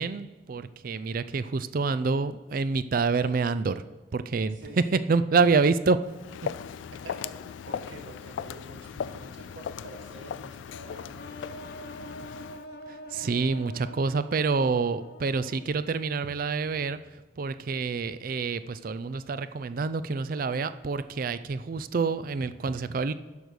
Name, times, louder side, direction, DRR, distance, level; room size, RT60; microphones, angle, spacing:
voice 1, 0.0-3.8 4.1-4.6 4.9-6.0 6.4-6.5 12.9-23.1, right 4 dB, 50° right, 13 dB, 0.4 m, -27 dB
voice 2, 4.5-4.9 7.0-11.6, right 1 dB, 85° right, 3 dB, 1.7 m, -46 dB
Walk footsteps, 6.0-12.6, left 7 dB, 80° left, 0.3 m, -38 dB
sound 1, 11.2-16.0, equal, 55° left, 0.9 m, -45 dB
11.0 x 5.2 x 6.3 m, 1.2 s
head